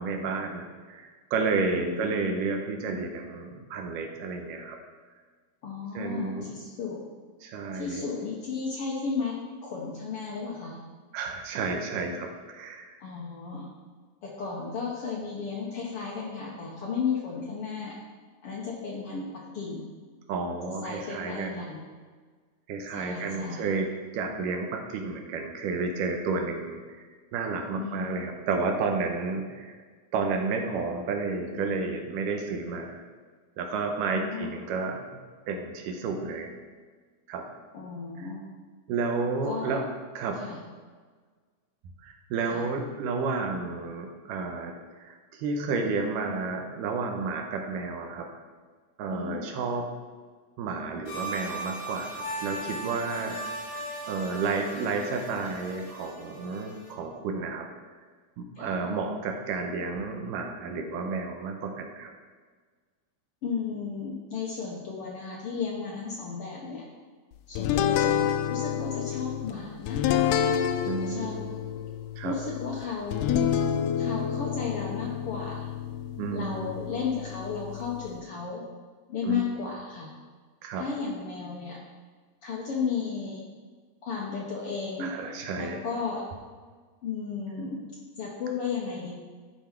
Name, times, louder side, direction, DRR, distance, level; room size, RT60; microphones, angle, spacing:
voice 1, 0.0-4.8 5.9-6.5 7.4-8.1 11.1-13.0 20.3-21.7 22.7-27.0 27.3-29.8 30.1-33.0 33.6-35.0 35.5-36.6 37.3-37.5 38.2-38.3 38.9-39.8 40.2-40.4 42.0-48.3 49.0-49.9 50.6-57.7 58.4-62.1 70.9-71.5 72.2-72.3 76.2-76.8 79.2-79.4 80.6-80.9 85.0-85.8, right 4 dB, 85° right, 3 dB, 2.4 m, -31 dB
voice 2, 1.7-2.2 5.6-7.0 7.7-10.8 13.0-13.7 14.2-18.0 18.4-19.9 20.6-21.9 22.9-23.7 27.8-28.1 31.5-31.7 34.1-34.5 37.7-38.5 39.4-39.8 40.4-40.6 42.5-42.6 49.1-49.4 58.5-58.7 63.4-66.8 67.5-70.4 71.0-71.4 72.2-73.4 74.0-75.7 76.3-78.6 79.1-80.1 80.8-81.8 82.4-83.4 84.0-85.1 85.6-86.3 87.0-87.8 88.2-89.1, left 5 dB, 65° left, -3 dB, 1.5 m, -34 dB
sound 1, 51.0-56.9, right 1 dB, 40° left, 1.1 m, -38 dB
sound 2, 67.6-78.2, left 9 dB, 85° left, 2.1 m, -29 dB
11.5 x 5.2 x 4.4 m, 1.5 s
omnidirectional pair, 3.7 m